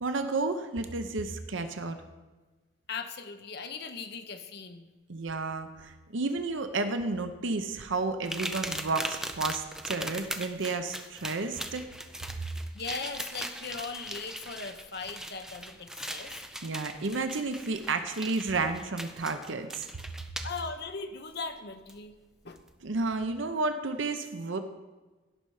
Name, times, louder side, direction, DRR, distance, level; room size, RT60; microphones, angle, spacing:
voice 1, 0.0-2.0 5.1-11.8 16.6-19.9 22.8-24.6, right 3 dB, 70° right, 8 dB, 0.8 m, -31 dB
voice 2, 2.9-4.9 12.7-16.3 20.4-22.1 22.4-22.6, left 4 dB, 55° left, 7 dB, 0.9 m, -39 dB
sound 1, 8.2-20.6 21.9-22.0 22.5-22.7, right 1 dB, 5° right, 0.5 m, -39 dB
16.5 x 5.6 x 4.8 m, 1.2 s
head